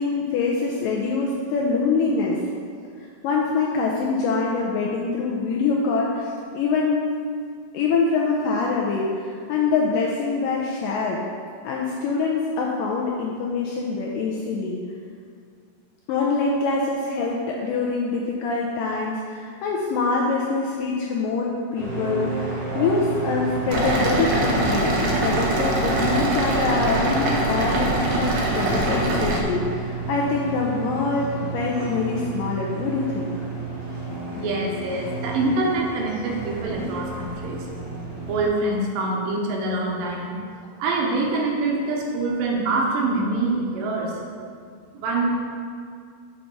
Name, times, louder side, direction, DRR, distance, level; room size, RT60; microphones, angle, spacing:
voice 1, 0.0-2.4 3.2-7.1 7.7-11.3 11.6-14.8 16.1-33.4, left 4 dB, 85° left, -2 dB, 1.9 m, -24 dB
sound 1, 21.8-38.5, right 4 dB, 50° right, 2.2 m, -32 dB
sound 2, 23.7-29.4, right 1 dB, 90° right, 1.6 m, -23 dB
voice 2, 34.3-37.7 38.3-44.2 44.9-45.3, right 2 dB, 75° right, -1 dB, 2.4 m, -25 dB
6.4 x 5.4 x 4.5 m, 2.2 s
omnidirectional pair, 4.5 m